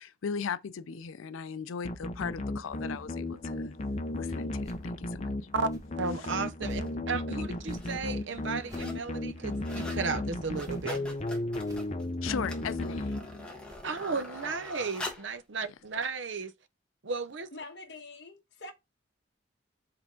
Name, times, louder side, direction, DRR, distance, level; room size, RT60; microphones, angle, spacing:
voice 1, 0.0-3.8 4.1-5.3 6.2-6.3 12.2-13.2, left 6 dB, 90° left, 0.4 m, -37 dB
sound 1, 1.8-13.7, left 2 dB, 35° left, 0.7 m, -35 dB
sound 2, 4.6-4.9 5.6-5.9 6.6-6.9 7.6-7.9 8.6-8.9 9.6-9.9 10.6-10.9 11.6-11.9 12.6-12.9 13.6-13.9, equal, 20° right, 1.0 m, -52 dB
voice 2, 6.0-11.0 13.8-16.5 17.0-17.5, right 4 dB, 65° right, 0.7 m, -34 dB
sound 3, 6.7-6.9 7.6-8.0 8.3-9.1 9.4-10.0 10.4-15.4 16.0-16.1, left 1 dB, 5° left, 1.3 m, -44 dB
voice 3, 17.5-18.7, left 2 dB, 60° left, 1.3 m, -45 dB
7.2 x 3.5 x 3.7 m
head